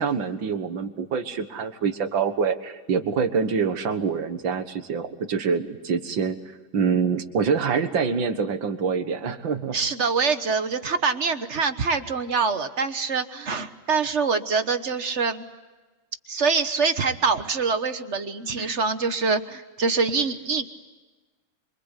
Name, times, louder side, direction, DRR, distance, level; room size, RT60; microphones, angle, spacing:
voice 1, 0.0-6.4 6.7-9.8, right 6 dB, 70° right, 9 dB, 2.2 m, -25 dB
voice 2, 9.7-15.5 16.3-20.8, right 4 dB, 40° right, 9 dB, 1.4 m, -25 dB
27.0 x 24.5 x 8.3 m, 1.2 s
omnidirectional pair, 2.2 m